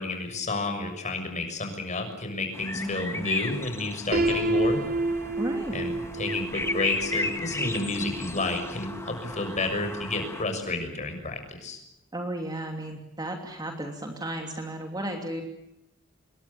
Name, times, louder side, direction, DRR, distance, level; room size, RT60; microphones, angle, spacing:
voice 1, 0.0-4.8 5.7-11.8, left 2 dB, 35° left, 5 dB, 6.5 m, -31 dB
sound 1, 2.5-10.4, left 2 dB, 15° left, 2.0 m, -35 dB
voice 2, 2.8-3.3 5.4-5.8 12.1-15.4, right 1 dB, 20° right, 3 dB, 2.9 m, -34 dB
Piano, 4.1-10.0, right 2 dB, 50° right, 3.0 m, -30 dB
27.0 x 22.5 x 7.1 m, 0.83 s
head